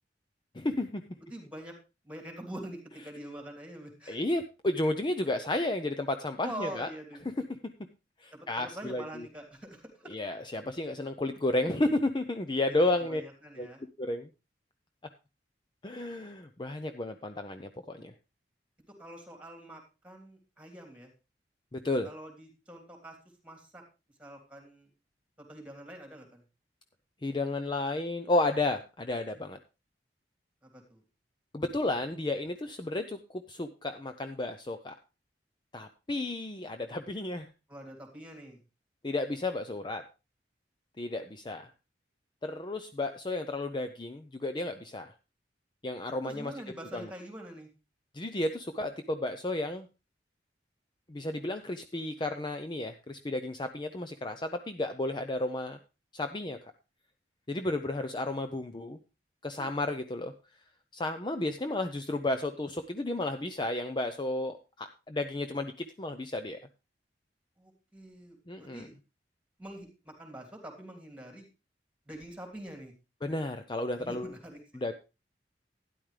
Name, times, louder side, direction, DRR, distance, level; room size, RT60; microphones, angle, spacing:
voice 1, 0.5-1.0 4.1-6.9 7.2-7.3 8.2-9.3 10.1-13.2 13.6-13.7 14.0-14.3 15.8-18.1 21.7-22.1 27.2-29.6 31.5-34.9 35.7-37.5 39.0-40.0 41.0-41.7 42.4-45.1 45.8-46.5 46.9-47.1 48.1-49.9 51.1-55.8 56.1-56.6 57.5-59.0 59.4-60.3 60.9-66.6 68.5-68.9 73.2-74.3 74.7-75.0, left 2 dB, 25° left, 7 dB, 0.6 m, -32 dB
voice 2, 1.3-1.7 2.0-4.2 6.4-7.2 8.3-10.1 12.7-13.8 19.0-21.1 22.0-23.2 23.4-23.8 24.2-24.9 25.4-26.4 30.6-31.0 37.7-38.6 46.2-47.7 59.6-59.7 67.6-68.9 69.6-71.5 72.1-72.9 74.0-75.0, right 1 dB, 5° right, 2 dB, 3.1 m, -45 dB
12.5 x 10.5 x 3.3 m, 0.29 s
head